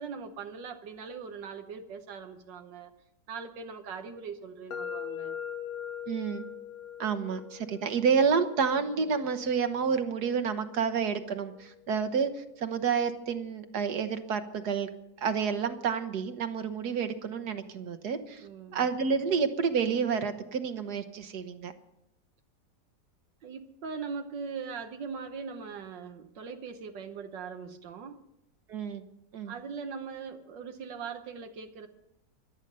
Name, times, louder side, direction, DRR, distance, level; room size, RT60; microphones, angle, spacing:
voice 1, 0.0-2.9 3.3-5.4 18.4-18.8 23.4-28.2 29.5-31.9, right 5 dB, 85° right, 1.7 m, -40 dB
sound 1, 4.7-12.6, left 8 dB, 65° left, 1.1 m, -43 dB
voice 2, 6.1-6.4 7.0-14.9 15.2-18.4 18.7-21.7 28.7-29.0 29.3-29.5, right 6 dB, 65° right, 1.6 m, -29 dB
24.5 x 9.0 x 5.4 m
omnidirectional pair, 1.9 m